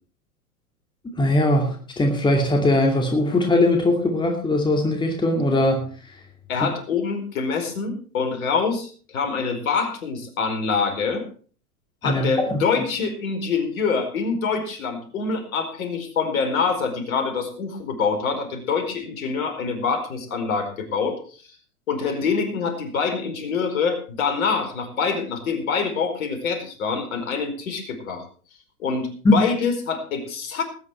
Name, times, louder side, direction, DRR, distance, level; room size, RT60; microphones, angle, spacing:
voice 1, 1.2-5.9 12.0-12.6 29.2-29.4, left 1 dB, 10° left, 2 dB, 2.5 m, -20 dB
voice 2, 6.5-11.2 12.0-21.4 21.9-28.2 28.8-30.6, left 5 dB, 65° left, 5 dB, 4.8 m, -25 dB
19.5 x 9.4 x 4.5 m, 0.42 s
hypercardioid pair, 105°, 45 cm